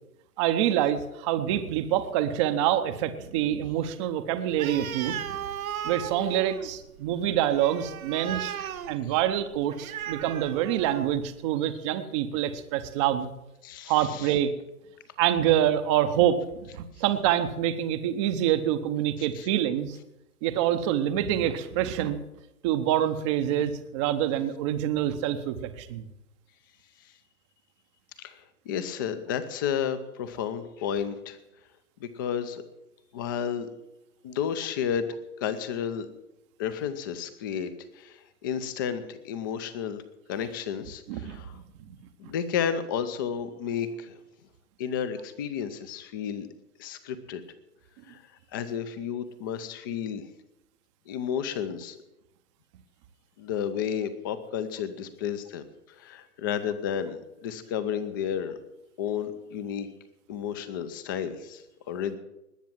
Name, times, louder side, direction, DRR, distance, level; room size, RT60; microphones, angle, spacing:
voice 1, 0.4-5.4 5.8-8.5 8.9-13.3 13.9-14.5 15.2-20.0 20.4-22.2 22.6-26.1 41.1-41.6 41.9-42.0, right 11 dB, 20° right, 10 dB, 0.7 m, -26 dB
Animal, 4.5-11.3, right 9 dB, 65° right, 1.1 m, -37 dB
voice 2, 13.6-14.3 19.3-19.5 28.2-31.4 32.0-32.6 33.1-33.7 34.2-35.1 35.4-36.1 36.6-40.0 40.3-41.6 42.2-44.2 44.8-46.5 46.8-47.4 48.1-48.2 48.5-50.2 51.1-52.0 53.4-58.5 59.0-59.9 60.3-62.2, left 8 dB, 15° left, 12 dB, 0.5 m, -32 dB
20.0 x 6.9 x 7.4 m, 0.89 s
hypercardioid pair, 140°, 45 cm